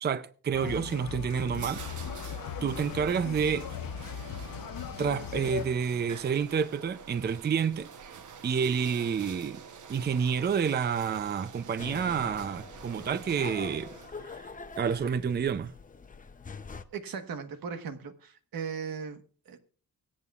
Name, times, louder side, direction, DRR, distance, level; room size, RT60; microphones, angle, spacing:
voice 1, 0.0-1.8 2.6-3.7 5.0-7.9 8.4-9.6 9.9-13.9 14.2-14.5 14.8-15.7, right 7 dB, 30° right, 0.5 m, -29 dB
sound 1, 0.5-5.7, left 8 dB, 80° left, 0.9 m, -38 dB
sound 2, 1.4-14.4, right 6 dB, 60° right, 1.0 m, -47 dB
sound 3, 11.8-16.8, left 4 dB, 25° left, 0.7 m, -44 dB
voice 2, 16.9-19.6, right 6 dB, 85° right, 1.4 m, -38 dB
24.0 x 8.3 x 2.4 m
wide cardioid pair, 120°, 34 cm